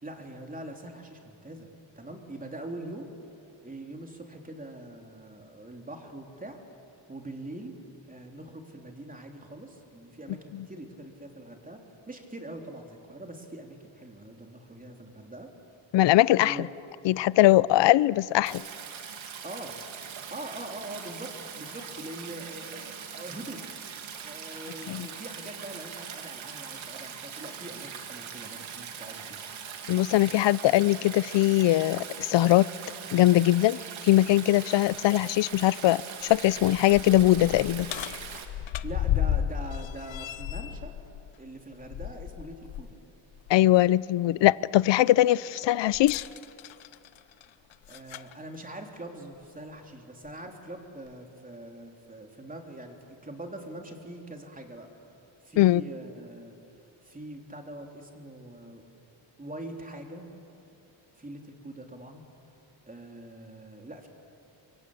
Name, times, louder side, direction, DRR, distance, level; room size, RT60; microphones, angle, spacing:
voice 1, 0.0-1.7 1.9-3.1 3.6-6.6 7.1-7.8 8.1-15.5 16.4-16.7 19.4-19.8 20.3-23.6 24.2-29.4 38.8-40.9 41.4-43.0 47.9-54.9 55.4-56.6 57.0-58.8 59.4-60.3 61.1-62.3 62.9-64.1, right 1 dB, 15° right, 3.2 m, -43 dB
voice 2, 15.9-16.6 17.0-18.6 24.9-25.1 29.9-32.7 33.1-37.9 43.5-46.2 55.6-55.8, left 15 dB, 65° left, 0.5 m, -21 dB
Stream, 18.5-38.5, right 7 dB, 85° right, 2.4 m, -41 dB
sound 1, 35.5-35.6 36.2-42.9 43.3-43.5 45.9-48.3 49.3-49.4 50.2-50.3, left 11 dB, 80° left, 0.9 m, -34 dB
27.5 x 23.5 x 8.5 m
cardioid pair, 110°, 47 cm